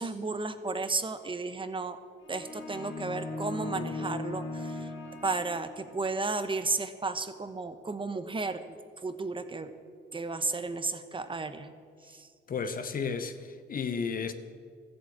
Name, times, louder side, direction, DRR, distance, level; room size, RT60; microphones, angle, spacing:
voice 1, 0.0-2.0 2.3-4.9 5.2-8.6 9.0-9.7 10.1-11.7 12.1-12.3, right 3 dB, 25° right, 1.0 m, -33 dB
sound 1, 2.2-6.2, left 2 dB, 80° left, 1.4 m, -38 dB
voice 2, 12.5-14.3, left 5 dB, 45° left, 1.0 m, -33 dB
13.5 x 7.6 x 8.7 m
cardioid pair, 90°, 20 cm